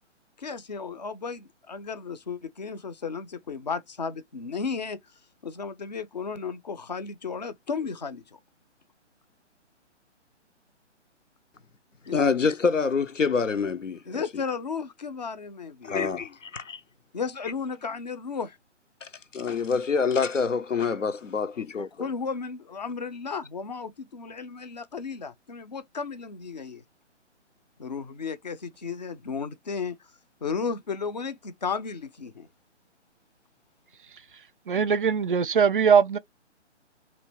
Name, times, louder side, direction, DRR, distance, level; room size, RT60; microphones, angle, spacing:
voice 1, 0.4-5.0 5.4-8.2 12.1-12.2 14.1-16.0 17.1-18.6 21.5-26.8 27.8-30.0 30.4-32.5, left 5 dB, 35° left, 0.4 m, -34 dB
voice 2, 12.1-14.2 15.8-16.8 19.0-21.9, left 5 dB, 90° left, 0.6 m, -26 dB
voice 3, 34.7-36.2, right 6 dB, 45° right, 0.4 m, -21 dB
3.0 x 2.4 x 3.2 m
figure-of-eight pair, 135°, 36 cm